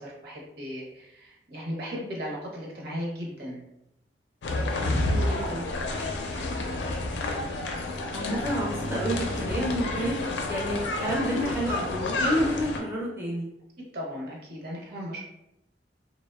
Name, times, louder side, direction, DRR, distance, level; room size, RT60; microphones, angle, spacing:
voice 1, 0.0-3.6 5.1-5.5 5.9-6.5 13.9-15.2, equal, 60° right, -3 dB, 0.7 m, -37 dB
sound 1, 4.4-12.8, left 2 dB, 85° left, 0.4 m, -30 dB
voice 2, 5.0-5.7 8.1-13.5, equal, 15° right, -5 dB, 0.4 m, -30 dB
2.8 x 2.0 x 2.2 m, 0.83 s
head